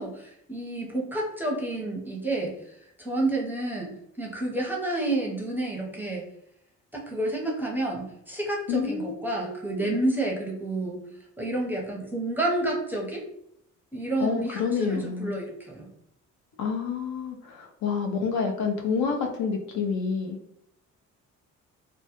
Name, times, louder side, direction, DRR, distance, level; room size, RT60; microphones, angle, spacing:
voice 1, 0.0-2.6 3.0-6.2 6.9-11.0 11.4-13.2 13.9-15.9, right 2 dB, 5° right, -2 dB, 0.6 m, -29 dB
voice 2, 8.7-9.9 14.2-15.3 16.6-20.4, left 5 dB, 70° left, 3 dB, 0.5 m, -28 dB
2.1 x 2.0 x 2.8 m, 0.75 s
cardioid pair, 90°, 30 cm